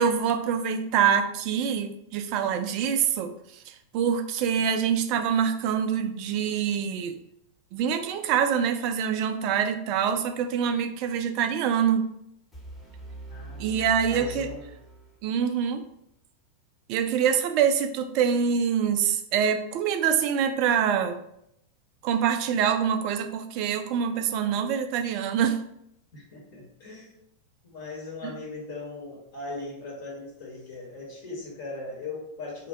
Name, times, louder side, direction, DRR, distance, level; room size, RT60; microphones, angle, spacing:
voice 1, 0.0-3.3 3.7-7.2 7.7-12.1 13.6-14.5 15.2-15.8 16.9-21.2 22.0-25.6, right 7 dB, 45° right, 7 dB, 0.3 m, -25 dB
sound 1, 12.5-15.5, right 2 dB, 10° left, 0.8 m, -42 dB
voice 2, 13.3-14.6 26.1-27.2 27.6-32.7, left 3 dB, 50° left, -3 dB, 0.9 m, -39 dB
2.6 x 2.2 x 3.5 m, 0.76 s
figure-of-eight pair, 90°, 0 cm